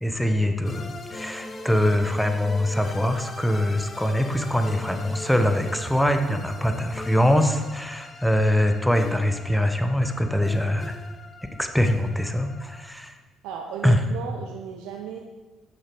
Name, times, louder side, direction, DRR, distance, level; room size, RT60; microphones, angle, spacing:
voice 1, 0.0-11.0 11.6-13.2 13.8-14.0, left 1 dB, 5° left, 6 dB, 1.0 m, -23 dB
sound 1, 0.6-12.9, left 2 dB, 35° left, 1.1 m, -40 dB
voice 2, 6.3-6.8 13.4-15.2, right 7 dB, 85° right, 2 dB, 0.8 m, -36 dB
9.6 x 6.5 x 6.1 m, 1.2 s
supercardioid pair, 75°, 0 cm